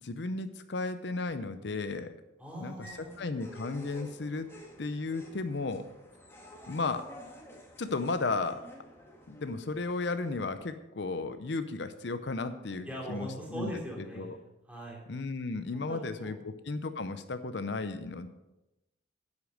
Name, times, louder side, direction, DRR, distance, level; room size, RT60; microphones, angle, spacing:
voice 1, 0.0-2.1 2.6-4.5 4.8-5.8 6.7-7.0 7.8-8.6 9.3-13.7 14.0-14.4 15.1-18.3, left 3 dB, 65° left, 10 dB, 0.6 m, -34 dB
voice 2, 2.4-3.2 12.9-15.0 15.7-16.4, equal, 5° right, -3 dB, 2.9 m, -41 dB
sound 1, 2.8-10.6, equal, 15° left, 1.8 m, -51 dB
10.5 x 8.2 x 6.5 m, 0.97 s
head